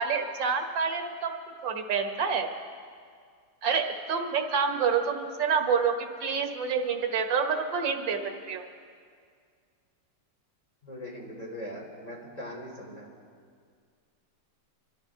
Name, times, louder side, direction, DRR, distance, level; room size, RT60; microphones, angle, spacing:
voice 1, 0.0-1.3 1.6-2.5 3.6-8.2 8.5-8.6, right 6 dB, 85° right, 4 dB, 1.8 m, -27 dB
voice 2, 10.8-13.1, equal, 20° left, -3 dB, 3.2 m, -40 dB
26.5 x 13.0 x 3.6 m, 2.1 s
omnidirectional pair, 1.9 m